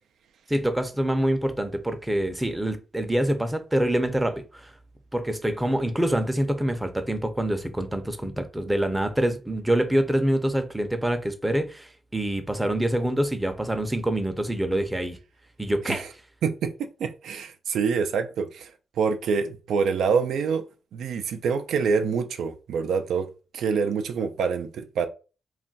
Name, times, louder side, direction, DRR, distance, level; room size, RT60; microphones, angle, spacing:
voice 1, 0.5-4.7 5.1-15.2 15.6-16.1, right 1 dB, 10° right, 0.5 m, -26 dB
voice 2, 16.4-18.7 19.0-20.6 20.9-23.3 23.5-25.1, right 5 dB, 85° right, 0.3 m, -26 dB
2.3 x 2.1 x 3.9 m
cardioid pair, 85°, 0 cm